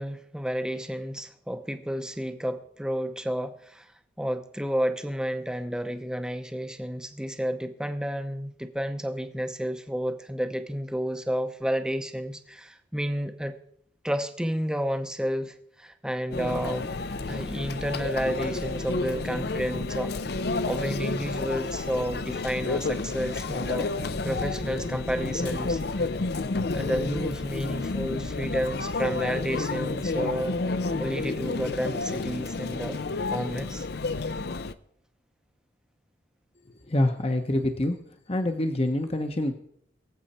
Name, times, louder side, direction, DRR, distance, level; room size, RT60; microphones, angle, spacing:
voice 1, 0.0-3.9 4.2-13.5 14.0-16.9 17.3-20.1 20.7-23.9 24.2-25.8 26.7-30.6 30.9-33.0 33.3-33.9, equal, 5° right, 0.8 m, -31 dB
Conversation / Chatter / Crowd, 16.3-34.7, left 3 dB, 60° left, 0.6 m, -30 dB
voice 2, 36.9-38.0 38.3-39.5, left 1 dB, 35° left, 1.0 m, -26 dB
23.0 x 7.8 x 4.3 m
head